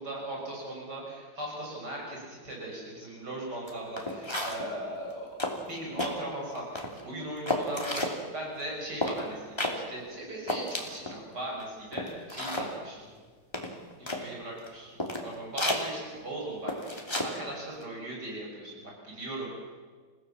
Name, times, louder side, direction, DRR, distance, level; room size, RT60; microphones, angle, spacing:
voice 1, 0.0-5.3 5.7-13.1 14.0-14.9 15.2-16.7 17.2-19.5, right 1 dB, 65° right, -2 dB, 7.0 m, -38 dB
sound 1, 3.7-3.8 4.0-4.7 5.1-5.2 5.4-6.1 6.6-7.0 7.5-8.2 9.0-9.2 9.6-9.8 10.1-10.2 10.5-11.2 11.6-11.7 11.9-12.7 13.5-14.2 14.7-14.8 15.0-15.3 15.6-15.8 16.7-17.3 17.6-17.8, left 1 dB, 15° left, 2.8 m, -32 dB
29.0 x 17.0 x 7.2 m, 1.5 s
omnidirectional pair, 2.0 m